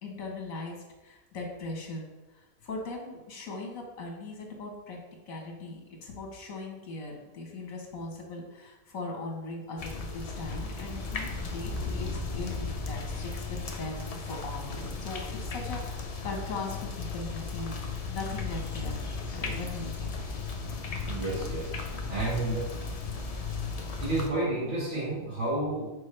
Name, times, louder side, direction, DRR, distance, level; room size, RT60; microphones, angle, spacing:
voice 1, 0.0-2.0 2.3-12.6 12.9-20.1 21.1-21.5, left 3 dB, 75° left, 1 dB, 1.6 m, -39 dB
sound 1, 9.8-24.3, left 4 dB, 50° left, 0.4 m, -35 dB
voice 2, 21.0-22.7 24.0-25.9, right 2 dB, 60° right, -6 dB, 2.2 m, -31 dB
6.5 x 4.7 x 3.3 m, 1.0 s
omnidirectional pair, 1.4 m